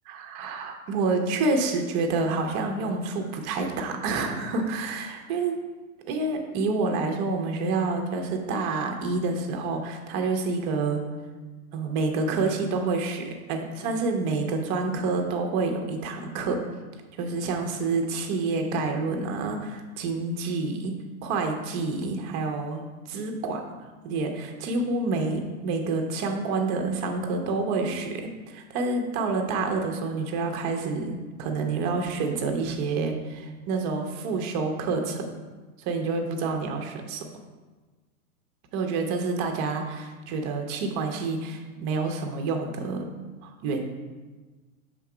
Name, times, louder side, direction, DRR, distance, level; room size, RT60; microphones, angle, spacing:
voice 1, 0.1-5.6 6.1-11.0 11.7-16.6 17.2-23.6 24.0-35.3 35.9-37.3 38.7-43.1 43.4-43.8, right 3 dB, 25° right, 4 dB, 0.5 m, -28 dB
5.6 x 3.7 x 4.7 m, 1.3 s
hypercardioid pair, 130°, 44 cm